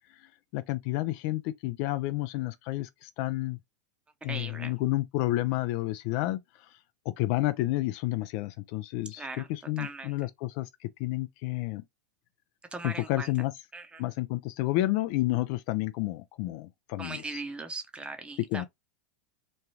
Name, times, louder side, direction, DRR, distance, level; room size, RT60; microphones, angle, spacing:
voice 1, 0.5-3.6 4.2-6.4 7.1-11.8 12.8-13.5 14.0-17.2 18.5-18.6, left 17 dB, 55° left, 0.4 m, -30 dB
voice 2, 4.3-4.7 9.2-9.5 9.8-10.2 12.7-13.3 13.7-14.0 17.0-18.6, right 3 dB, 10° right, 0.7 m, -39 dB
3.1 x 2.3 x 2.8 m
hypercardioid pair, 105°, 9 cm